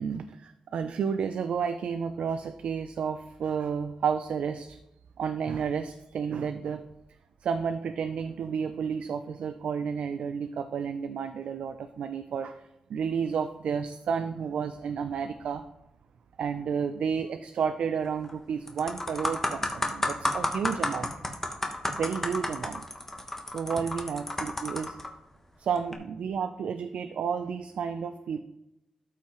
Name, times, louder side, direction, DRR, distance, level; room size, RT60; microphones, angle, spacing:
voice 1, 0.0-4.8 5.2-6.8 7.4-12.6 12.9-15.6 16.4-21.1 21.9-22.8 23.5-25.0 25.6-28.4, right 6 dB, 80° right, 9 dB, 0.4 m, -31 dB
sound 1, 18.0-18.3 18.7-25.1 25.8-25.9, left 1 dB, 15° left, 1.2 m, -31 dB
13.0 x 5.8 x 3.0 m, 0.86 s
cardioid pair, 100°, 2 cm